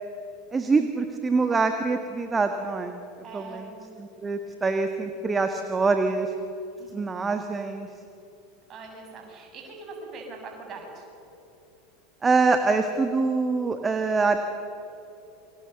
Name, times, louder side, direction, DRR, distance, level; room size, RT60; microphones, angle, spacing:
voice 1, 0.5-3.0 3.3-3.7 4.0-6.3 6.9-7.9 12.2-14.4, right 4 dB, 20° right, 7 dB, 1.6 m, -25 dB
voice 2, 3.2-3.9 6.8-7.2 8.7-11.0, right 3 dB, 35° right, 1 dB, 7.2 m, -42 dB
28.5 x 24.5 x 6.9 m, 3.0 s
figure-of-eight pair, 80°, 0 cm